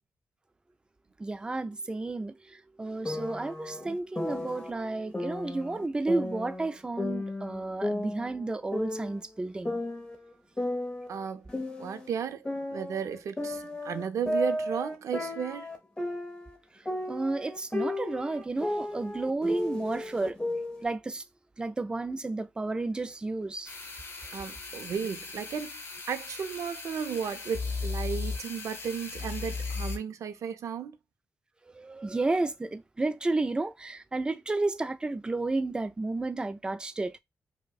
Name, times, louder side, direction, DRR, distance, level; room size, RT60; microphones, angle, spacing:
voice 1, 1.2-9.8 17.1-20.4 20.8-21.2 21.6-23.7 31.7-37.2, right 2 dB, 15° right, 0.3 m, -32 dB
sound 1, 3.1-4.7 5.1-6.7 7.0-9.2 9.6-12.1 12.5-16.6 16.9-20.8, left 1 dB, 15° left, 0.8 m, -34 dB
voice 2, 11.1-11.5 11.8-12.5 12.7-15.7 24.3-25.8 26.1-31.0, right 7 dB, 85° right, 0.5 m, -34 dB
sound 2, 23.6-30.0, left 4 dB, 50° left, 0.8 m, -37 dB
4.9 x 2.1 x 2.3 m
wide cardioid pair, 120°, 5 cm